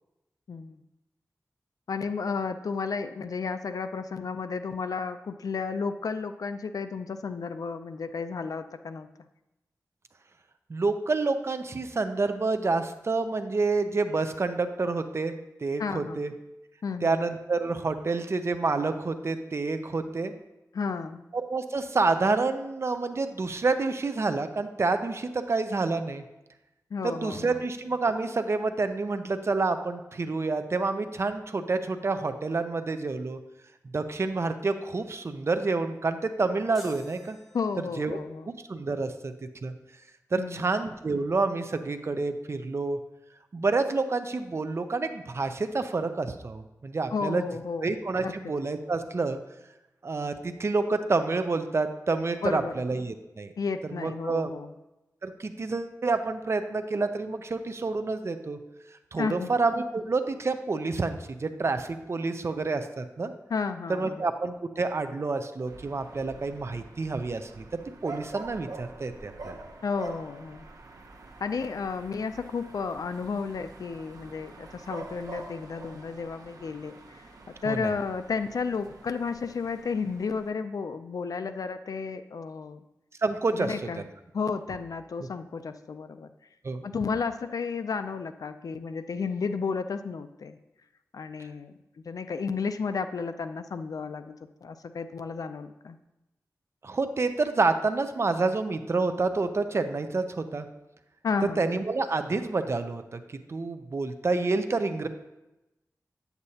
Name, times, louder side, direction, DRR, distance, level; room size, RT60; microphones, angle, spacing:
voice 1, 0.5-0.8 1.9-9.1 15.8-16.2 16.8-17.1 20.7-21.2 26.9-27.6 37.5-38.5 40.4-40.6 47.1-47.9 48.2-48.3 52.4-52.7 53.6-54.8 59.2-59.5 63.5-64.2 69.8-70.7 71.4-77.2 77.6-82.8 83.5-84.1 84.3-86.3 86.8-90.6 91.1-91.7 92.0-94.4 94.6-96.0 101.2-101.8, left 5 dB, 80° left, 10 dB, 0.4 m, -32 dB
voice 2, 10.7-15.4 15.6-16.3 17.0-20.3 21.3-26.2 27.0-33.4 33.9-37.4 38.0-38.2 38.5-39.3 39.6-39.7 40.3-43.0 43.5-47.4 47.8-49.4 50.0-53.5 53.9-54.5 55.2-58.6 59.1-63.3 63.9-69.6 77.7-77.9 83.2-84.0 86.6-86.8 96.8-100.7 101.6-105.1, right 3 dB, 45° right, 8 dB, 0.5 m, -28 dB
sound 1, 36.7-38.3, equal, ahead, 1.7 m, -51 dB
sound 2, 65.7-80.5, right 3 dB, 85° right, 0.8 m, -46 dB
8.6 x 8.0 x 2.8 m, 0.97 s
wide cardioid pair, 110°, 6 cm